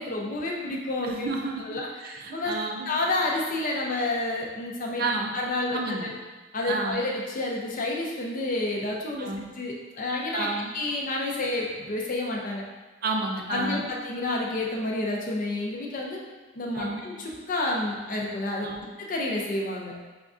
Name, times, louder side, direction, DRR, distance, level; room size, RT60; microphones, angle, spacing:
voice 1, 0.0-1.3 1.6-1.9 2.3-2.5 2.9-5.0 5.3-6.1 6.5-9.3 9.5-10.5 10.7-12.6 13.5-16.2 16.6-18.7 19.0-19.9, left 2 dB, 40° left, -1 dB, 0.5 m, -29 dB
voice 2, 1.0-3.0 5.0-5.3 5.7-6.1 6.7-7.1 9.2-9.4 10.3-10.7 13.0-13.9 16.7-17.0 18.6-18.9, right 3 dB, 50° right, 1 dB, 0.4 m, -31 dB
5.1 x 2.3 x 2.5 m, 1.3 s
head